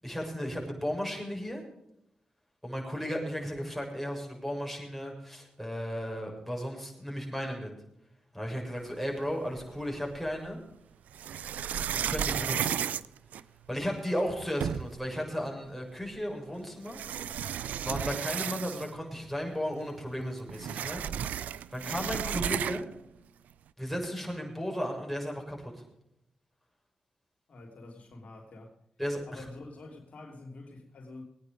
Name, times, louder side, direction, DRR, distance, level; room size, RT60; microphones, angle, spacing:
voice 1, 0.0-1.6 2.6-7.7 8.3-10.6 11.9-12.9 13.7-17.0 17.8-21.0 21.3-21.4 21.7-22.9 23.8-25.7 29.0-29.4, equal, ahead, -1 dB, 6.8 m, -35 dB
sound 1, 9.6-10.3 11.1-13.9 14.3-14.4 14.6-15.1 16.1-16.2 16.8-19.1 19.4-19.5 19.8-23.0, right 9 dB, 85° right, 0.4 m, -33 dB
voice 2, 27.5-28.7 29.3-31.2, left 2 dB, 65° left, 1 dB, 3.2 m, -47 dB
20.5 x 9.6 x 5.2 m, 0.81 s
cardioid pair, 50°, 3 cm